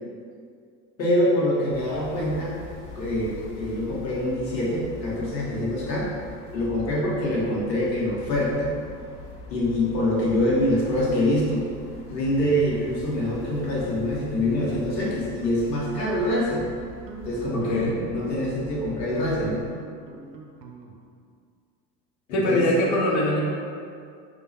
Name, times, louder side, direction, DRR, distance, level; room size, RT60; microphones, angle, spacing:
voice 1, 1.0-2.6 2.9-6.1 6.5-8.7 9.5-11.6 12.1-16.7 17.2-19.7 22.3-22.7, left 1 dB, 80° left, -5 dB, 1.0 m, -25 dB
sound 1, 1.7-19.8, left 2 dB, 60° left, 1.1 m, -42 dB
sound 2, 12.4-13.5 13.8-14.2 14.6-15.2 15.4-15.6 16.0-16.4 16.8-21.2, right 2 dB, 75° right, 0.6 m, -44 dB
voice 2, 17.5-18.0 22.3-23.4, left 1 dB, 35° left, -4 dB, 0.8 m, -23 dB
3.2 x 2.3 x 4.1 m, 2.3 s
figure-of-eight pair, 75°, 49 cm